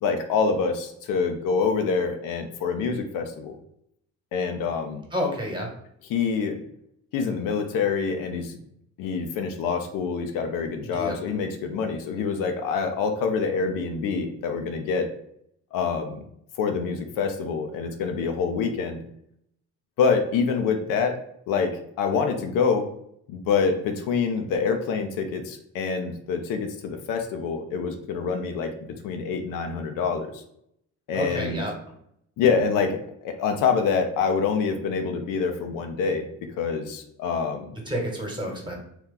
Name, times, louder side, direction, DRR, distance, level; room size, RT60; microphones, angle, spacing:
voice 1, 0.0-3.6 4.3-5.0 6.1-6.6 7.1-8.6 9.0-15.1 15.7-16.2 16.6-19.0 20.0-21.2 21.5-22.9 23.3-28.7 29.0-30.4 31.1-31.6 32.4-36.3 36.6-37.8, left 5 dB, 80° left, 5 dB, 0.6 m, -26 dB
voice 2, 5.1-5.7 10.8-11.2 31.1-31.7 37.9-38.7, equal, 15° right, 0 dB, 1.2 m, -29 dB
2.9 x 2.4 x 3.7 m, 0.73 s
supercardioid pair, 80°, 32 cm